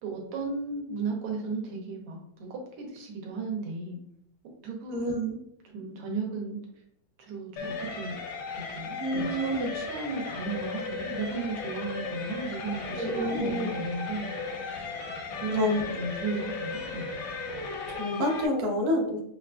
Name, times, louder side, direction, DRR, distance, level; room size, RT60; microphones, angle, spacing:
voice 1, 0.0-4.0 4.6-5.4 5.7-6.6 7.2-8.2 8.5-14.3 15.4-17.1, right 4 dB, 85° right, 0 dB, 1.8 m, -35 dB
voice 2, 4.9-5.3 9.0-9.8 13.0-13.7 15.5-15.8 17.9-19.2, left 1 dB, 65° right, 1 dB, 1.0 m, -28 dB
sound 1, 7.6-18.5, left 4 dB, 70° left, 1.0 m, -36 dB
5.6 x 2.5 x 2.2 m, 0.75 s
omnidirectional pair, 2.4 m